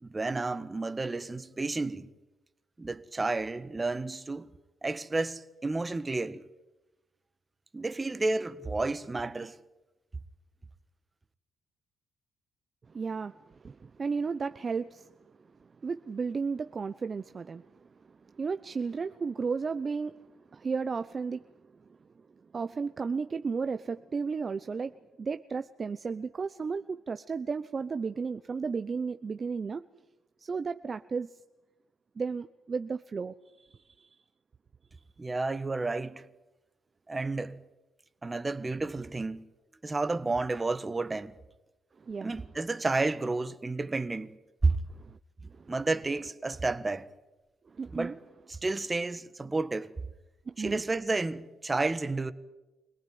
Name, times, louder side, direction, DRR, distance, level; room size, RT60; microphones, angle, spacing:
voice 1, 0.0-2.1 2.8-4.5 4.8-6.4 7.7-9.6 35.2-36.2 37.1-37.6 38.2-39.4 39.8-41.3 42.2-44.3 44.6-44.8 45.7-47.1 47.9-48.1 48.5-49.9 50.6-52.3, right 3 dB, 20° right, 1.4 m, -31 dB
voice 2, 12.9-15.1 15.6-21.5 22.5-29.8 30.4-31.4 32.2-34.1 42.0-42.3 44.9-45.2 45.5-45.7 47.7-48.2 50.5-50.8, right 5 dB, 35° right, 0.8 m, -34 dB
25.5 x 18.5 x 9.5 m
cardioid pair, 90°, 0 cm